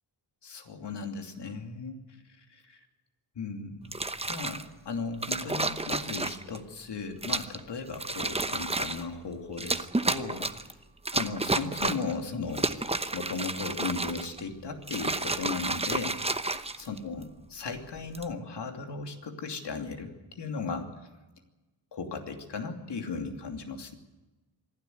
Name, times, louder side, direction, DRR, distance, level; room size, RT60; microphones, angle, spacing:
voice 1, 0.4-2.0 2.4-2.8 3.4-3.9 4.3-10.5 11.1-12.7 13.1-16.1 16.8-20.9 21.9-23.9, left 4 dB, 70° left, 4 dB, 2.9 m, -36 dB
sound 1, 3.8-4.6 5.2-6.6 7.2-7.6 7.9-9.1 9.6-10.7 11.1-12.1 12.5-14.4 14.8-17.2 18.0-18.3, right 2 dB, 15° right, 0.9 m, -31 dB
25.5 x 12.0 x 9.5 m, 1.1 s
cardioid pair, 85°, 44 cm